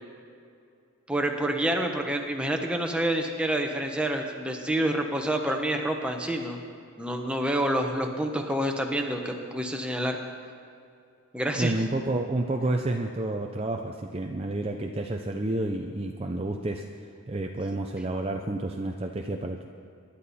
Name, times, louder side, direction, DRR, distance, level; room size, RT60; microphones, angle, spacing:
voice 1, 1.1-6.6 7.0-10.2 11.3-11.7, right 1 dB, 5° right, 2 dB, 1.0 m, -28 dB
voice 2, 11.6-19.7, right 2 dB, 25° right, 2 dB, 0.5 m, -30 dB
23.5 x 11.5 x 4.2 m, 2.4 s
head